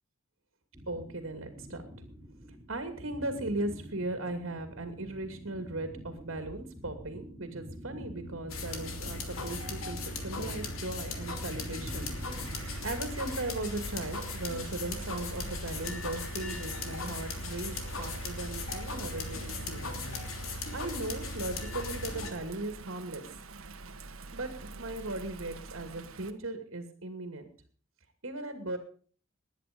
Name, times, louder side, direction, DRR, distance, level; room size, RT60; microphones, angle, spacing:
sound 1, 0.7-13.2, equal, 15° right, 2.8 m, -46 dB
voice 1, 0.9-1.9 2.7-12.1 12.5-19.9 20.7-23.2 24.3-27.4 28.2-28.8, right 2 dB, 65° right, 7 dB, 2.5 m, -38 dB
sound 2, 8.5-22.3, left 2 dB, 85° left, 3.0 m, -38 dB
Bird vocalization bird call bird song / Rain, 11.7-26.3, right 3 dB, 85° right, 1.5 m, -46 dB
20.0 x 10.0 x 5.3 m, 0.43 s
head